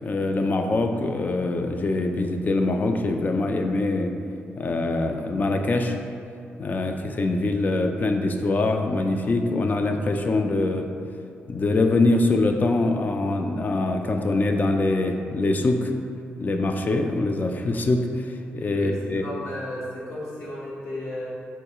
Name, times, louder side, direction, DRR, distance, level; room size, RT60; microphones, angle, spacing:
voice 1, 0.0-4.1 4.6-6.0 6.6-10.9 11.5-15.9 16.4-19.2, left 2 dB, 40° left, 5 dB, 0.3 m, -23 dB
voice 2, 18.7-21.3, left 1 dB, 75° left, -7 dB, 1.1 m, -34 dB
4.4 x 2.3 x 2.9 m, 2.4 s
cardioid pair, 60°, 4 cm